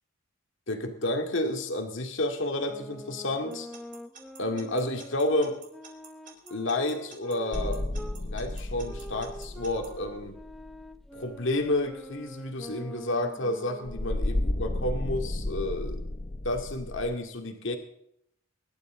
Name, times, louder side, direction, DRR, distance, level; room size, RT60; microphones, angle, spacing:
voice 1, 0.7-3.7 4.4-5.6 6.5-7.8 8.3-10.4 11.1-16.0 16.4-17.8, left 1 dB, 60° left, 4 dB, 2.2 m, -30 dB
sound 1, 2.6-8.2 8.8-14.3, equal, ahead, 1.0 m, -45 dB
Alarm / Clock, 3.5-9.9, right 6 dB, 40° right, 3.7 m, -49 dB
sound 2, 7.5-11.1 13.9-17.2, left 1 dB, 25° left, 0.7 m, -33 dB
24.0 x 12.0 x 3.8 m, 0.72 s
head